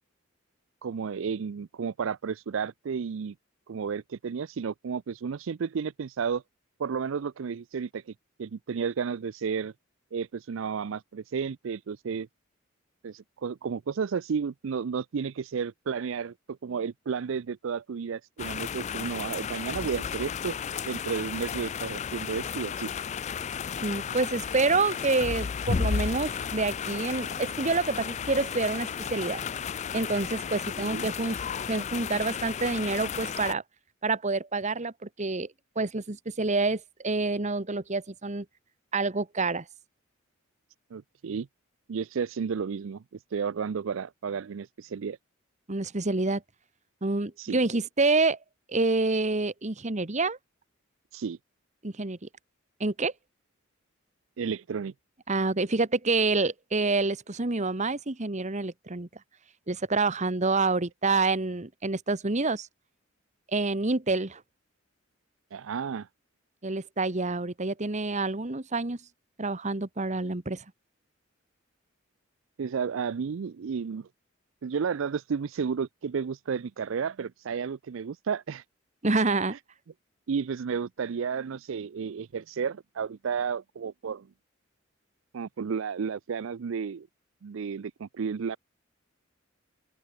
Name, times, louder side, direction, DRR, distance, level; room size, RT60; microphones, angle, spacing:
voice 1, 0.8-3.3 3.7-6.4 6.8-8.1 8.4-9.7 10.1-12.3 13.0-20.6 20.9-22.9 30.5-31.1 40.9-41.5 41.9-43.0 43.3-45.2 47.4-47.6 51.1-51.4 54.4-54.9 65.5-66.1 72.6-74.1 74.6-78.6 79.5-79.6 80.3-84.3 85.3-87.1 87.4-88.6, right 6 dB, 70° right, 0.4 m, -32 dB
sound 1, 18.4-33.5, left 6 dB, 35° left, 0.4 m, -33 dB
voice 2, 23.8-29.4 29.9-31.4 31.7-33.6 34.0-35.5 35.7-38.4 38.9-39.6 45.7-46.4 47.0-48.4 48.7-50.4 51.8-52.3 52.8-53.1 55.3-59.1 59.7-62.7 63.5-64.4 66.6-69.0 69.4-70.6 79.0-79.5, right 3 dB, 35° right, 1.3 m, -27 dB
open air
head